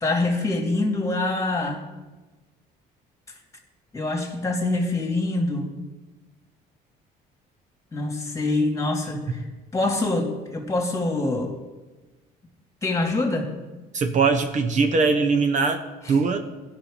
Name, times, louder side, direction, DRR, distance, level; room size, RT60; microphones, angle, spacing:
voice 1, 0.0-1.8 3.9-5.7 7.9-9.4 9.7-11.5 12.8-13.5, left 2 dB, 20° left, 3 dB, 2.2 m, -25 dB
voice 2, 13.9-15.8 16.1-16.4, right 4 dB, 45° right, 6 dB, 1.0 m, -21 dB
16.0 x 5.8 x 5.0 m, 1.2 s
cardioid pair, 110°, 17 cm